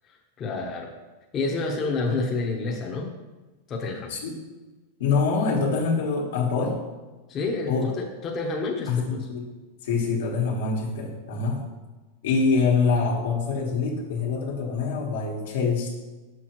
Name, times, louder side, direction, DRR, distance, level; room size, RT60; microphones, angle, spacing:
voice 1, 0.4-0.9 1.3-3.1 3.7-4.1 7.3-9.3, left 3 dB, 30° left, -1 dB, 0.8 m, -29 dB
voice 2, 4.1-4.4 5.0-6.8 7.7-7.9 8.9-9.5 9.8-11.6 12.2-15.9, left 4 dB, 80° left, -1 dB, 1.4 m, -25 dB
6.0 x 5.7 x 3.0 m, 1.2 s
supercardioid pair, 130°, 0 cm